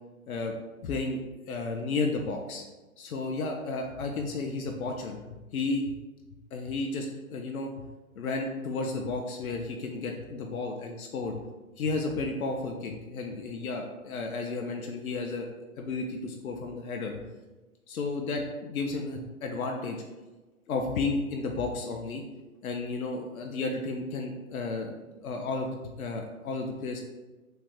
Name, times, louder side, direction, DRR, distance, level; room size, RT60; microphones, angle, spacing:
voice 1, 0.8-1.2 1.5-2.6 3.0-5.2 5.5-5.8 6.5-7.7 8.2-11.4 11.8-15.5 15.8-17.2 17.9-20.0 20.7-22.2 22.6-27.0, left 3 dB, 75° left, 2 dB, 0.5 m, -32 dB
3.1 x 2.4 x 3.5 m, 1.2 s
figure-of-eight pair, 125°, 43 cm